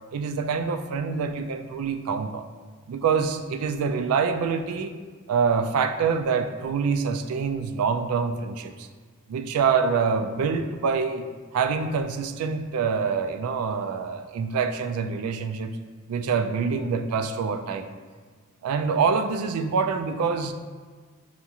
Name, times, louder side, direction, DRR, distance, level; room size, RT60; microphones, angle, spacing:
voice 1, 0.1-2.4 2.9-4.9 5.3-8.9 9.3-11.3 11.5-15.7 16.1-17.9 18.6-20.5, right 5 dB, 85° right, 8 dB, 0.3 m, -25 dB
5.7 x 2.4 x 2.8 m, 1.5 s
head